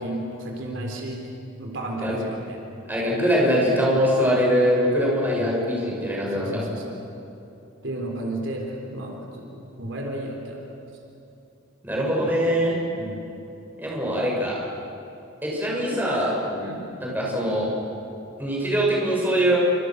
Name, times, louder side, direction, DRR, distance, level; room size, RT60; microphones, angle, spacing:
voice 1, 0.0-1.2 1.6-2.6 5.3-5.6 6.3-6.9 7.8-10.6 13.0-13.3 16.6-16.9, right 1 dB, 70° right, 1 dB, 4.1 m, -33 dB
voice 2, 2.9-6.6 11.8-12.8 13.8-14.6 15.4-16.4 17.0-17.7 18.4-19.6, equal, 10° right, -4 dB, 7.5 m, -22 dB
29.0 x 26.0 x 6.6 m, 2.9 s
head